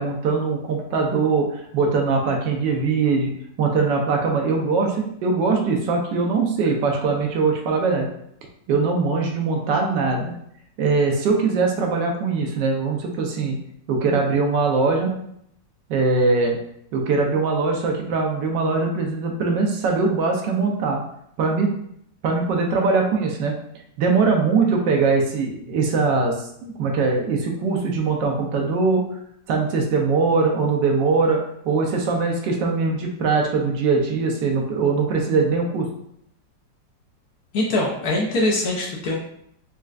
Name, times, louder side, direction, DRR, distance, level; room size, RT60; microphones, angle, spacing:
voice 1, 0.0-1.5 1.7-3.3 3.6-8.1 8.7-10.4 10.8-13.6 13.9-15.1 15.9-16.6 16.9-21.0 21.4-21.7 22.2-23.5 24.0-26.4 26.6-29.0 29.5-31.4 31.6-35.9, right 4 dB, 80° right, 1 dB, 1.3 m, -21 dB
voice 2, 37.5-39.2, left 2 dB, 65° left, -2 dB, 1.0 m, -22 dB
4.2 x 2.4 x 2.3 m, 0.70 s
omnidirectional pair, 1.9 m